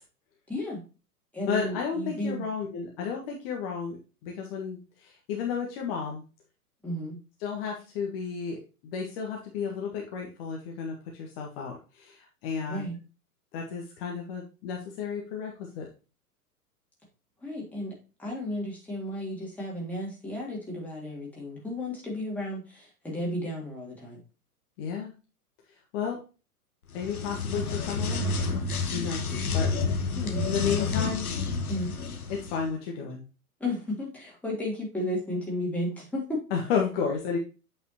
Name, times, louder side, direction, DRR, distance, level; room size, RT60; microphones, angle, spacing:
voice 1, 0.5-0.8 1.3-2.4 6.8-7.2 12.7-13.0 17.4-17.9 18.2-24.2 30.1-30.9 31.7-31.9 33.6-36.4, left 1 dB, 5° left, -4 dB, 3.3 m, -33 dB
voice 2, 1.5-6.2 7.4-12.9 13.5-15.9 24.8-25.1 25.9-26.2 26.9-28.3 28.9-29.7 30.4-31.3 32.3-33.2 36.5-37.4, left 6 dB, 40° left, 0 dB, 1.7 m, -32 dB
sound 1, 26.9-32.6, left 4 dB, 65° left, 1.3 m, -30 dB
8.2 x 6.0 x 2.9 m, 0.32 s
figure-of-eight pair, 100°, 46 cm